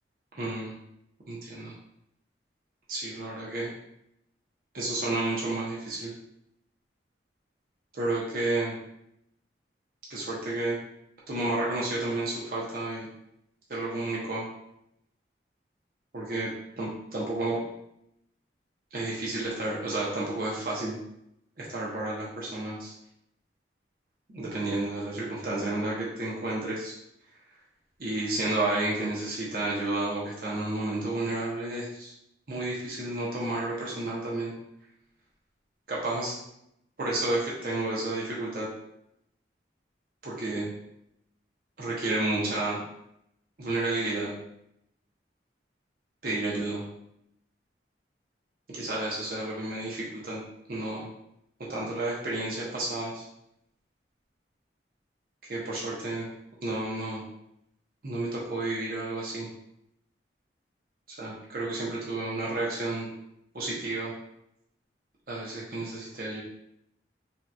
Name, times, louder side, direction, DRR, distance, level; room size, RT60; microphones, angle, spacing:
voice 1, 0.4-0.7 1.3-1.7 2.9-3.7 4.7-6.1 7.9-8.7 10.1-10.8 11.3-13.1 13.7-14.4 16.1-16.5 16.8-17.6 18.9-21.0 21.6-22.9 24.3-26.9 28.0-32.1 32.5-34.5 35.9-36.3 37.0-38.7 40.2-40.7 41.8-42.8 43.6-44.3 46.2-46.8 48.7-50.4 50.7-51.1 51.7-53.2 55.4-56.3 56.6-57.2 58.0-59.5 61.1-63.1 63.5-64.1 65.3-66.4, right 2 dB, 55° right, -5 dB, 0.7 m, -31 dB
3.7 x 2.8 x 2.2 m, 0.79 s
head